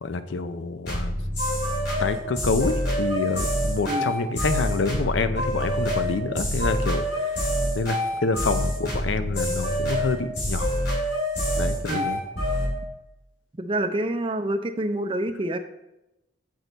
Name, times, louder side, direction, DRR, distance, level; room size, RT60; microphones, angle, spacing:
voice 1, 0.0-1.2 2.0-7.1 7.7-10.7 11.6-12.2, left 3 dB, 80° left, 11 dB, 0.5 m, -27 dB
sound 1, 0.9-12.7, equal, 60° left, 2.8 m, -26 dB
voice 2, 13.6-15.6, right 1 dB, 30° right, 8 dB, 0.5 m, -27 dB
6.6 x 6.3 x 4.0 m, 0.91 s
head